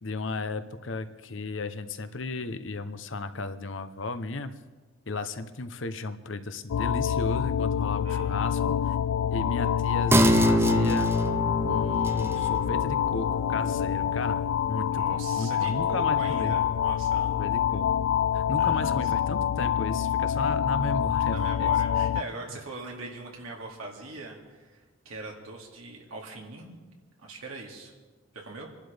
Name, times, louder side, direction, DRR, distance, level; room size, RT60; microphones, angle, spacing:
voice 1, 0.0-4.6 5.1-9.0 9.3-11.1 11.6-16.6 17.4-17.9 18.3-21.7, left 2 dB, 60° left, 10 dB, 0.8 m, -34 dB
sound 1, 6.7-22.2, left 9 dB, 85° left, 0.3 m, -26 dB
voice 2, 8.0-8.5 14.9-17.5 18.6-19.1 21.3-24.8 25.0-26.8 27.2-27.9 28.3-28.7, right 2 dB, 85° right, -1 dB, 2.3 m, -41 dB
sound 2, 10.1-17.1 17.5-17.6, right 1 dB, 10° right, 0.4 m, -28 dB
27.5 x 11.5 x 3.5 m, 1.4 s
head